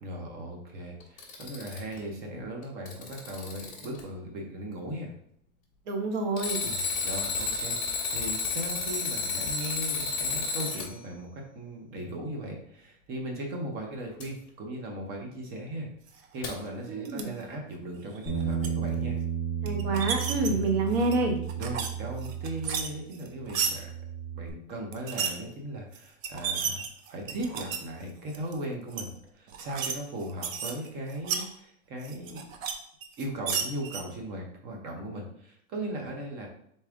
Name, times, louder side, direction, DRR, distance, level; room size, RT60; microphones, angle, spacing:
voice 1, 0.0-5.1 6.6-15.9 16.3-19.2 20.4-20.6 21.5-23.9 24.4-32.4 33.2-36.5, right 1 dB, 25° right, 1 dB, 0.7 m, -38 dB
Alarm, 1.0-2.0 2.6-4.0 6.4-10.9 14.2-14.3 16.4-16.5, left 4 dB, 20° left, 1.2 m, -31 dB
voice 2, 5.9-6.6 16.9-17.3 19.6-21.4, right 2 dB, 45° right, 3 dB, 1.1 m, -28 dB
sound 1, 17.0-17.2 18.1-18.7 19.7-20.5 20.9-21.9 22.2-23.7 24.9-25.3 25.9-26.0 26.2-27.8 28.3-28.5 28.9-29.0 29.5-29.9 30.2-31.4 32.0-32.7 33.0-34.0, right 7 dB, 65° right, 0.8 m, -32 dB
Bass guitar, 18.3-23.0 23.3-24.5, right 8 dB, 5° right, 1.2 m, -33 dB
4.0 x 3.7 x 3.6 m, 0.71 s
supercardioid pair, 160°, 42 cm